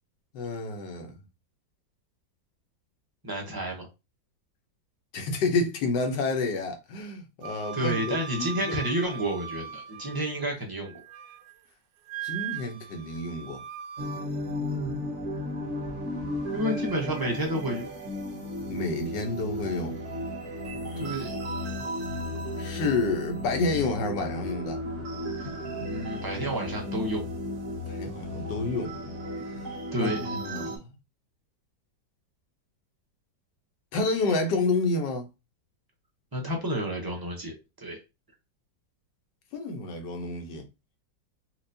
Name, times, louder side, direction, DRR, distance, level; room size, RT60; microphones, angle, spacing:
voice 1, 0.3-1.2 5.1-8.8 12.2-13.6 18.7-20.0 22.6-24.8 27.9-29.0 30.0-30.8 33.9-35.3 39.5-40.6, left 3 dB, 75° left, 1.5 m, -29 dB
voice 2, 3.2-3.9 7.7-10.9 14.6-15.0 16.5-17.9 21.0-21.3 25.4-25.5 25.9-27.2 29.9-30.4 36.3-38.0, equal, 25° right, 0.4 m, -30 dB
Wind instrument woodwind instrument, 7.4-10.4 10.8-11.5 12.1-14.3, right 8 dB, 85° right, 1.3 m, -39 dB
sound 1, 14.0-30.8, left 1 dB, 50° right, 1.3 m, -34 dB
4.4 x 2.5 x 2.6 m
omnidirectional pair, 1.9 m